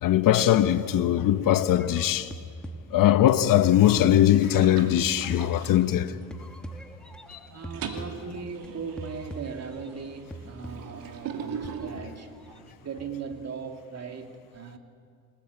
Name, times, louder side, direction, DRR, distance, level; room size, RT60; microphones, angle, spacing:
voice 1, 0.0-2.3 2.9-6.1 7.3-7.4, left 12 dB, 65° left, 1.1 m, -21 dB
sound 1, 1.7-3.3 3.6-6.0 6.3-8.7 9.0-10.0 10.3-11.1 11.6-12.7 13.0-13.5, right 1 dB, ahead, 1.9 m, -43 dB
sound 2, 3.7-4.0 4.4-6.5 6.9-7.2 7.5-12.7, right 6 dB, 70° right, 2.6 m, -41 dB
voice 2, 7.5-14.8, right 5 dB, 45° right, 2.7 m, -38 dB
27.0 x 19.5 x 8.4 m
cardioid pair, 95°, 36 cm